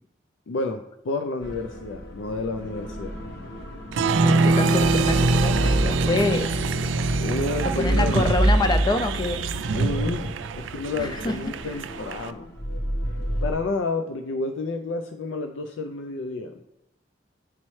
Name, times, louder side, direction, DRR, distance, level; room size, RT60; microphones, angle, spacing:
voice 1, 0.5-3.2 7.2-8.3 9.7-12.5 13.1-16.6, left 3 dB, 85° left, 6 dB, 0.4 m, -30 dB
sound 1, 1.4-13.5, right 1 dB, 65° left, 1.2 m, -29 dB
Applause, 3.9-12.3, right 3 dB, 85° right, 0.4 m, -24 dB
voice 2, 4.2-6.6 7.8-9.4 11.0-11.3, left 2 dB, 20° left, 8 dB, 0.3 m, -26 dB
9.8 x 4.2 x 3.1 m, 0.88 s
head